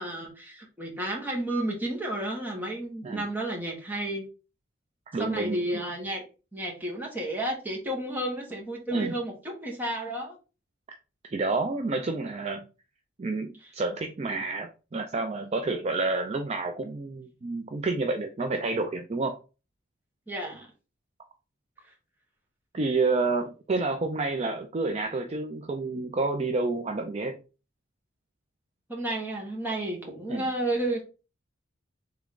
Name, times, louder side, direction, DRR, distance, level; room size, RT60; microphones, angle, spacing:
voice 1, 0.0-4.2 5.2-6.2 6.5-10.3 20.3-20.7 28.9-31.0, right 1 dB, 10° right, 1.3 m, -32 dB
voice 2, 5.1-5.8 8.9-9.1 11.3-12.7 13.2-19.4 22.7-27.4 30.3-30.4, right 3 dB, 30° right, 0.4 m, -29 dB
3.6 x 3.5 x 3.6 m
head